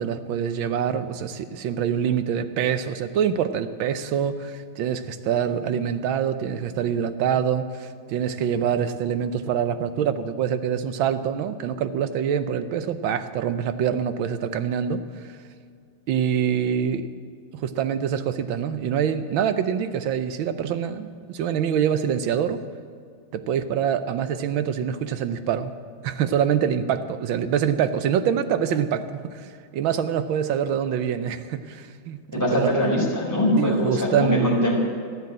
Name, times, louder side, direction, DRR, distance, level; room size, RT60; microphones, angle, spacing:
voice 1, 0.0-15.0 16.1-17.1 17.5-22.6 23.3-25.7 26.0-29.4 29.7-32.8 33.6-34.6, right 8 dB, 75° right, 11 dB, 1.5 m, -25 dB
voice 2, 32.3-34.8, left 1 dB, 10° left, -4 dB, 3.8 m, -22 dB
14.5 x 9.6 x 7.8 m, 2.1 s
omnidirectional pair, 2.2 m